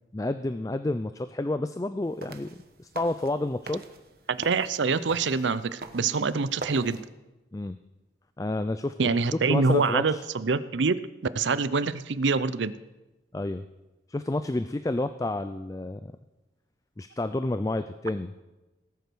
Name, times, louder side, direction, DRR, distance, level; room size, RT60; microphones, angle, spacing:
voice 1, 0.1-3.8 7.5-7.8 8.4-9.1 9.5-10.2 13.3-13.6 14.1-16.1 17.0-18.3, left 2 dB, 20° left, 11 dB, 0.3 m, -30 dB
sound 1, 2.0-7.0, right 3 dB, 55° right, 1.1 m, -44 dB
voice 2, 4.3-7.1 9.0-11.0 11.3-12.8, right 4 dB, 80° right, 16 dB, 0.6 m, -25 dB
18.5 x 8.3 x 6.2 m, 1.1 s
head